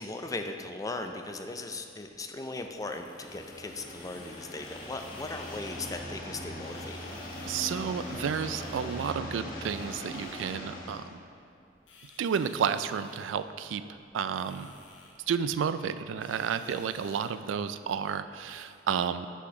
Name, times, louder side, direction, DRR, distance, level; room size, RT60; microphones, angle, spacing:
voice 1, 0.0-7.1 16.7-16.8, left 2 dB, 20° left, 5 dB, 0.4 m, -38 dB
sound 1, 1.8-18.7, left 3 dB, 75° left, 0.9 m, -54 dB
sound 2, 3.1-11.1, left 1 dB, 50° left, 1.1 m, -41 dB
voice 2, 7.4-11.2 12.2-14.7 15.3-19.3, right 7 dB, 80° right, 12 dB, 0.3 m, -31 dB
6.1 x 5.9 x 5.7 m, 2.6 s
head